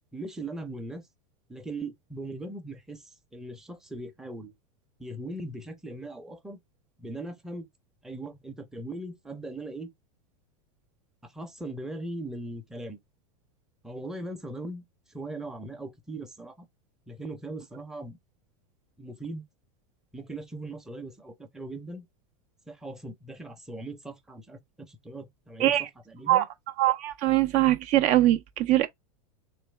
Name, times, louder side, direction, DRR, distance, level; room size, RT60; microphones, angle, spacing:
voice 1, 0.1-1.0 1.5-4.5 5.0-6.6 7.0-7.7 8.0-9.9 11.2-13.0 13.8-14.8 15.1-16.7 17.1-18.2 19.0-19.5 20.1-22.1 22.7-25.8 26.1-26.4, right 2 dB, 5° right, 0.6 m, -39 dB
voice 2, 26.8-28.9, right 15 dB, 45° right, 0.6 m, -22 dB
3.2 x 3.0 x 3.1 m
supercardioid pair, 130°, 18 cm